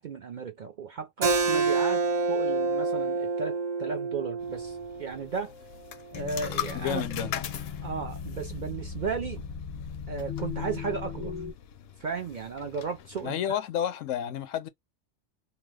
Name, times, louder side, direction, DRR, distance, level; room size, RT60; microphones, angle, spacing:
voice 1, 0.0-2.0 2.3-5.5 6.1-7.3 7.8-9.4 10.1-11.3 12.0-13.6, right 5 dB, 60° right, 0.5 m, -35 dB
Keyboard (musical), 1.2-6.4, right 4 dB, 40° right, 0.8 m, -28 dB
sound 1, 4.4-13.3, left 10 dB, 65° left, 0.7 m, -42 dB
sound 2, 6.1-11.5, left 7 dB, 35° left, 0.4 m, -37 dB
voice 2, 6.7-7.3 13.2-14.7, left 10 dB, 85° left, 1.0 m, -30 dB
3.0 x 2.0 x 3.2 m
omnidirectional pair, 1.3 m